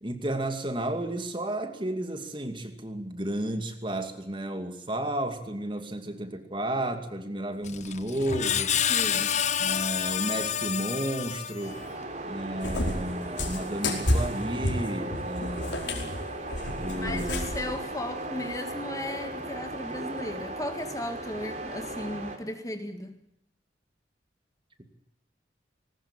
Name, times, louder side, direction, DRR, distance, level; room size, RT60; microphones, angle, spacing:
voice 1, 0.0-8.8 9.6-11.8 12.2-16.2 16.8-17.5, right 1 dB, 25° right, 2.4 m, -32 dB
Screech, 7.6-11.9, left 8 dB, 40° left, 0.9 m, -29 dB
voice 2, 8.9-9.3 16.9-23.2, left 1 dB, 20° left, 1.7 m, -36 dB
sound 1, 11.6-22.4, right 1 dB, 40° right, 3.6 m, -37 dB
Cat, 12.6-17.7, left 1 dB, 85° left, 4.9 m, -30 dB
20.5 x 19.5 x 8.9 m
head